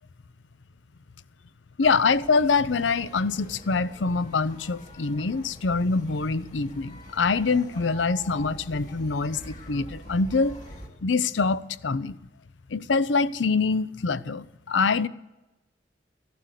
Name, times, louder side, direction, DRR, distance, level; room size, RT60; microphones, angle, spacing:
voice 1, 1.8-10.6 11.0-12.2 12.7-15.1, left 4 dB, 75° left, 0.6 m, -25 dB
sound 1, 1.8-10.9, left 1 dB, 40° left, 2.6 m, -45 dB
15.0 x 11.5 x 8.3 m
head